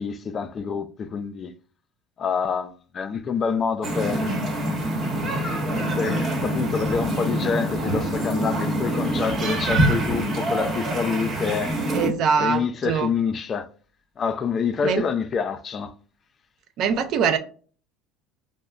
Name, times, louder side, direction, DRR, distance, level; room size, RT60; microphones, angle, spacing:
voice 1, 0.0-1.5 2.2-4.4 6.0-11.8 12.4-13.7 14.2-15.9, left 6 dB, 35° left, 0.3 m, -27 dB
sound 1, 3.8-12.1, right 1 dB, 40° right, 1.1 m, -25 dB
voice 2, 11.9-13.1 14.8-15.0 16.8-17.4, right 6 dB, 60° right, 0.5 m, -23 dB
4.8 x 2.1 x 2.2 m
supercardioid pair, 100°, 0 cm